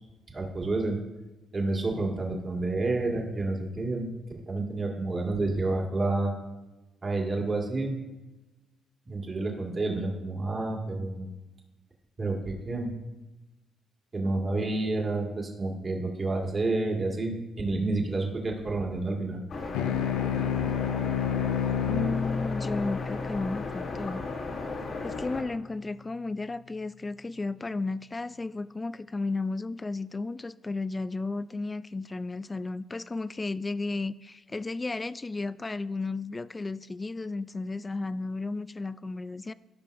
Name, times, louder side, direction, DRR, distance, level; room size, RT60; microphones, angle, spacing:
voice 1, 0.3-1.0 1.5-4.1 4.5-6.3 7.0-8.0 9.1-11.3 12.2-12.9 14.1-19.4, right 2 dB, 35° right, 2.0 m, -29 dB
sound 1, 19.5-25.4, left 3 dB, 60° left, 2.1 m, -35 dB
sound 2, 19.7-24.6, left 8 dB, 90° left, 0.4 m, -30 dB
voice 2, 21.8-24.2 25.0-39.5, left 3 dB, 25° left, 0.4 m, -33 dB
16.5 x 5.5 x 2.6 m
supercardioid pair, 65°, 0 cm